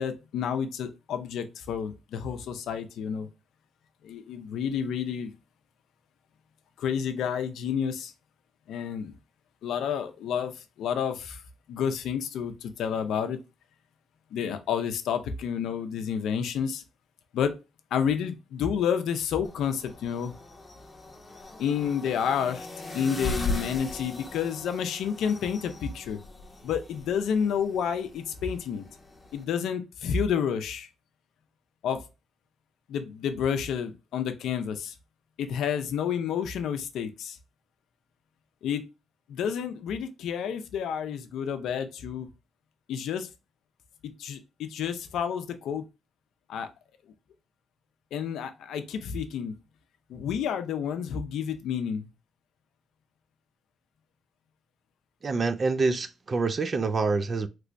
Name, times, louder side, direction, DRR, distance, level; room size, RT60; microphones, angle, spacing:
voice 1, 0.0-3.3 4.0-5.3 6.8-8.1 8.7-9.1 9.6-10.5 10.8-11.4 11.7-13.4 14.3-16.8 17.3-17.5 17.9-20.3 21.6-22.7 22.9-26.2 26.6-28.8 29.3-30.9 31.8-32.0 32.9-34.9 35.4-37.4 38.6-38.8 39.3-42.3 42.9-43.3 44.2-45.8 46.5-46.7 48.1-49.5 50.1-52.1, left 7 dB, 75° left, 0.5 m, -30 dB
sound 1, 19.4-29.4, left 2 dB, 20° left, 0.8 m, -39 dB
voice 2, 55.2-57.5, right 4 dB, 35° right, 0.3 m, -26 dB
3.2 x 3.0 x 2.5 m
cardioid pair, 90°, 0 cm